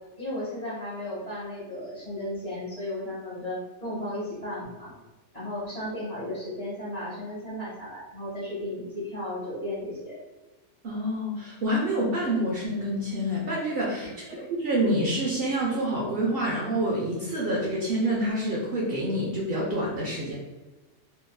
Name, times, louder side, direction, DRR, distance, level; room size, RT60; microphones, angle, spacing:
voice 1, 0.2-4.9 5.3-10.2 14.0-14.1, left 1 dB, 35° left, -8 dB, 1.1 m, -34 dB
voice 2, 10.8-20.4, right 1 dB, 60° right, -4 dB, 0.7 m, -27 dB
2.9 x 2.5 x 2.2 m, 1.2 s
omnidirectional pair, 1.3 m